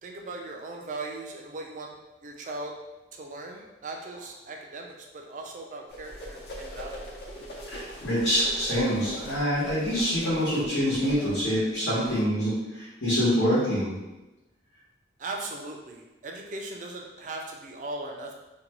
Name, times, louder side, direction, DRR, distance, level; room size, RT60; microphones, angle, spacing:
voice 1, 0.0-1.9 2.2-2.7 3.1-7.0 15.2-18.3, right 2 dB, 40° right, 1 dB, 0.3 m, -38 dB
sound 1, 5.9-12.2, equal, 60° left, 0.5 m, -41 dB
voice 2, 7.7-14.0, equal, 85° left, -11 dB, 1.0 m, -26 dB
2.6 x 2.2 x 2.8 m, 1.0 s
head